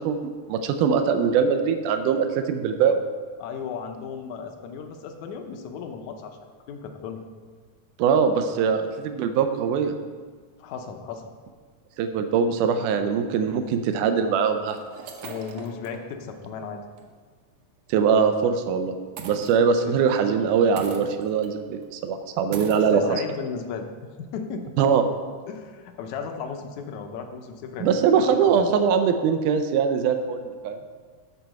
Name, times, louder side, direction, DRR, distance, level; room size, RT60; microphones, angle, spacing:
voice 1, 0.1-3.0 8.0-9.9 12.0-14.8 17.9-18.9 19.3-23.2 24.8-25.0 27.8-30.8, right 6 dB, 85° right, 7 dB, 2.2 m, -22 dB
voice 2, 3.4-6.4 6.7-7.2 10.6-11.3 15.2-16.8 19.8-20.0 22.7-23.9 24.3-24.6 25.5-27.9 28.3-28.6, left 6 dB, 75° left, 5 dB, 2.1 m, -35 dB
sound 1, 14.6-16.0 16.5-16.6 17.0-17.1 19.2-20.0 20.8-21.5 21.8-21.9 22.5-22.9, right 5 dB, 70° right, 1.8 m, -40 dB
11.0 x 4.7 x 6.4 m, 1.5 s
omnidirectional pair, 3.6 m